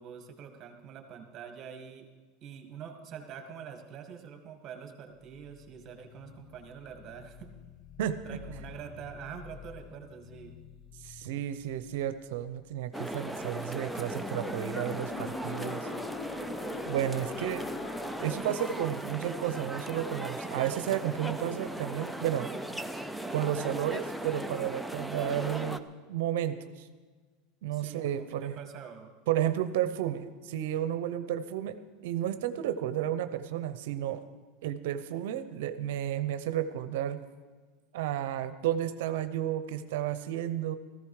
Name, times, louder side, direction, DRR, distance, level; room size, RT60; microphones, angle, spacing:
voice 1, 0.0-2.1 2.4-7.5 8.2-10.5 27.7-29.1, right 7 dB, 40° right, 6 dB, 1.9 m, -45 dB
sound 1, 5.2-18.5, left 7 dB, 40° left, 0.7 m, -46 dB
voice 2, 11.0-15.9 16.8-17.6 18.2-22.5 23.3-25.8 26.1-26.9 27.6-28.6 29.3-31.8 32.0-34.2 34.6-37.2 37.9-40.8, right 11 dB, 75° right, 12 dB, 0.7 m, -32 dB
sound 2, 12.9-25.8, right 1 dB, ahead, 0.6 m, -37 dB
15.5 x 14.5 x 4.9 m, 1.4 s
supercardioid pair, 125°, 0 cm